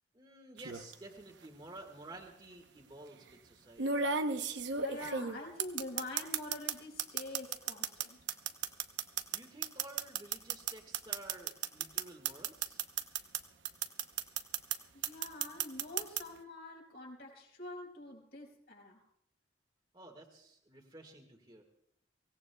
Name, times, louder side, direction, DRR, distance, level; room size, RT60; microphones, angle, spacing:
voice 1, 0.1-4.0 9.3-12.8 19.9-21.6, right 2 dB, 25° right, 0 dB, 1.6 m, -52 dB
sound 1, 0.6-0.9 2.1-2.2 3.8-6.7 7.0-13.4 13.6-14.8 15.0-16.2, right 6 dB, 75° right, 0.8 m, -34 dB
voice 2, 4.8-8.2 14.9-19.0, left 1 dB, 60° left, 0 dB, 5.1 m, -46 dB
24.5 x 17.5 x 2.3 m, 0.73 s
head